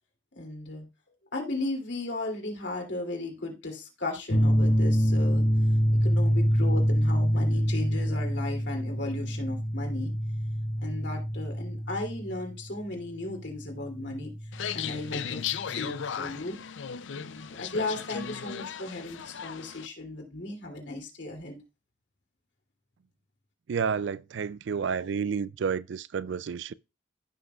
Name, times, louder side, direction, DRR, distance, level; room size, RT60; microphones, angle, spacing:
voice 1, 0.3-0.9 1.3-5.4 6.0-10.1 10.8-14.3 14.7-15.4 15.7-16.6 17.1-21.6, left 2 dB, 70° left, 2.8 m, -35 dB
sound 1, 4.3-15.5, equal, 35° left, 1.3 m, -26 dB
sound 2, 14.5-19.9, left 8 dB, 85° left, 0.5 m, -36 dB
voice 2, 23.7-26.7, right 6 dB, 75° right, 0.4 m, -30 dB
15.0 x 6.2 x 2.4 m
head